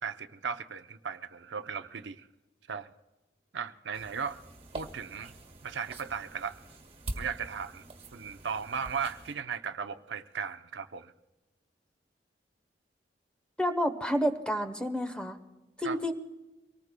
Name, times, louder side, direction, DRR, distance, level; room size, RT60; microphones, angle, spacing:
voice 1, 0.0-2.3 2.7-2.9 3.5-4.4 4.7-5.3 5.6-6.6 7.1-7.8 8.1-11.1 15.8-16.0, right 6 dB, 85° right, 9 dB, 0.7 m, -36 dB
sound 1, 3.9-9.3, right 1 dB, 35° right, 1.7 m, -44 dB
voice 2, 13.6-15.4 15.8-16.1, equal, 5° left, 8 dB, 0.9 m, -29 dB
24.5 x 19.0 x 2.2 m, 1.1 s
head